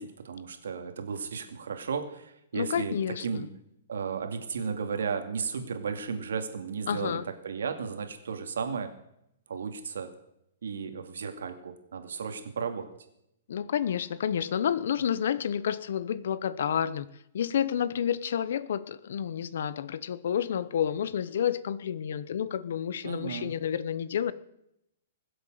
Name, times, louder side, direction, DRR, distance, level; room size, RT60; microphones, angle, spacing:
voice 1, 0.0-3.0 3.2-3.5 3.9-8.9 9.5-10.1 10.6-12.9 23.0-23.5, right 5 dB, 90° right, 7 dB, 2.5 m, -34 dB
voice 2, 2.5-3.5 6.9-7.3 13.5-17.1 17.3-24.3, left 9 dB, 65° left, 18 dB, 0.9 m, -30 dB
20.5 x 8.0 x 7.8 m, 0.80 s
hypercardioid pair, 160°, 0 cm